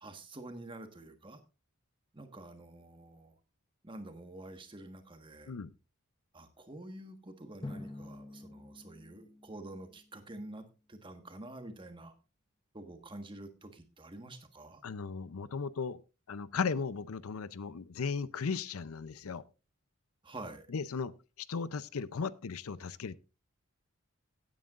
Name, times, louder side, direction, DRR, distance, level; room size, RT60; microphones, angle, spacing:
voice 1, 0.0-1.4 2.1-3.3 3.8-5.5 6.3-12.1 12.7-14.8 20.2-20.7, right 1 dB, 25° right, 1.4 m, -48 dB
Drum, 7.6-10.3, left 2 dB, 20° left, 0.8 m, -47 dB
voice 2, 14.8-16.0 16.3-19.4 20.7-21.1 21.5-23.2, left 5 dB, 85° left, 0.6 m, -36 dB
16.5 x 9.2 x 2.5 m
head